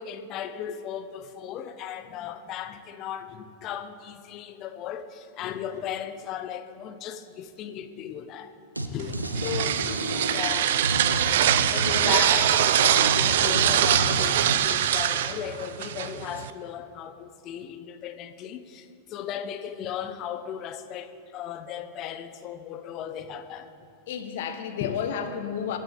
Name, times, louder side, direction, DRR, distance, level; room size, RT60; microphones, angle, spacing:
voice 1, 0.0-9.8 10.3-10.8 11.5-23.7 24.8-25.1, left 9 dB, 35° left, 0.8 m, -36 dB
sound 1, 8.8-8.9 9.1-14.5, right 1 dB, 85° right, 0.9 m, -30 dB
sound 2, 9.0-16.5, right 11 dB, 55° right, 0.5 m, -23 dB
voice 2, 9.1-10.6 24.1-25.8, left 7 dB, 55° left, 1.3 m, -34 dB
23.5 x 10.0 x 4.2 m
figure-of-eight pair, 90°, 0 cm